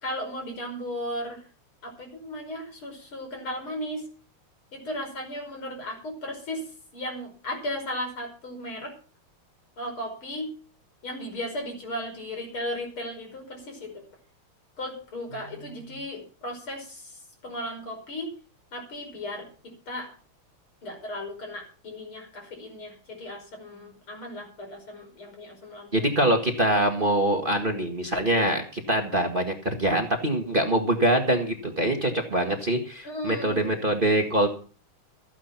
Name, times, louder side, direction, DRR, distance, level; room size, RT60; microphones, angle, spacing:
voice 1, 0.0-1.4 1.8-4.0 4.7-6.6 6.9-8.9 9.8-10.5 11.0-13.9 14.8-17.0 17.4-18.3 18.7-19.5 19.9-20.1 20.8-26.0 33.0-33.6, left 1 dB, 70° left, 3 dB, 6.2 m, -35 dB
voice 2, 25.9-34.5, right 1 dB, 25° right, 3 dB, 1.8 m, -24 dB
15.0 x 9.8 x 5.8 m, 0.38 s
omnidirectional pair, 2.4 m